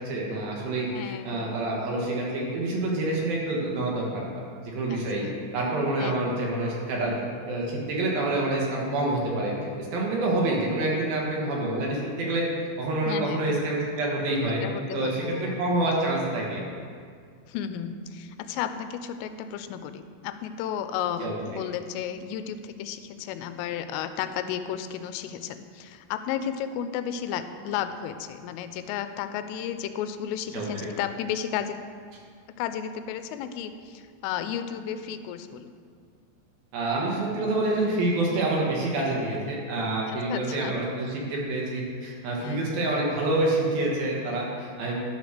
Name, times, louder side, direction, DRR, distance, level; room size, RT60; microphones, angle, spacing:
voice 1, 0.0-5.2 5.5-7.1 7.5-9.5 9.8-12.4 12.8-14.6 14.9-16.6 21.2-21.4 30.5-30.7 36.7-45.0, right 2 dB, 65° right, -3 dB, 2.5 m, -27 dB
voice 2, 0.9-1.4 4.9-5.4 6.0-6.4 13.1-13.7 14.6-15.6 17.5-31.8 32.6-35.7 40.1-40.7 42.4-42.7, left 9 dB, 85° left, 10 dB, 3.1 m, -33 dB
11.5 x 5.1 x 6.4 m, 2.1 s
omnidirectional pair, 5.7 m